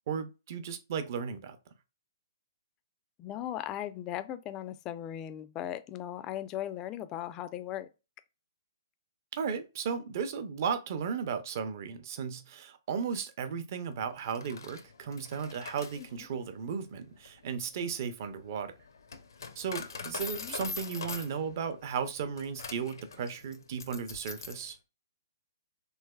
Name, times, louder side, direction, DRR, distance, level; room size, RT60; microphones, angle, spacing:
voice 1, 0.1-1.6 9.3-18.7 19.6-24.8, right 6 dB, 50° right, 0.6 m, -35 dB
voice 2, 3.2-7.9 20.4-20.6, left 11 dB, 25° left, 0.3 m, -38 dB
Coin (dropping), 14.2-24.7, left 5 dB, 80° left, 0.6 m, -43 dB
3.2 x 3.0 x 2.2 m
hypercardioid pair, 140°, 2 cm